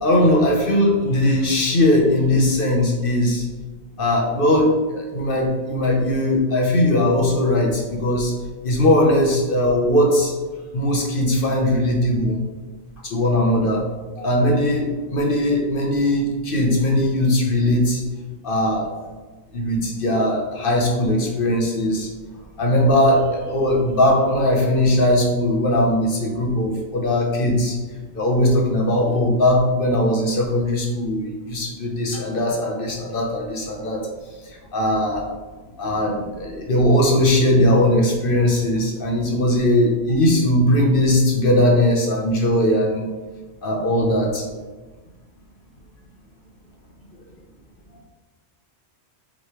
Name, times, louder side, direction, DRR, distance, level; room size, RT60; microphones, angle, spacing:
voice 1, 0.0-3.4 4.0-8.4 8.6-10.3 10.7-12.4 13.0-13.8 14.2-18.0 18.4-18.9 19.5-22.1 22.6-27.8 28.1-34.1 34.4-35.2 35.8-43.1 43.6-44.5, left 1 dB, 55° left, 0 dB, 1.3 m, -19 dB
7.9 x 3.9 x 3.3 m, 1.3 s
omnidirectional pair, 1.1 m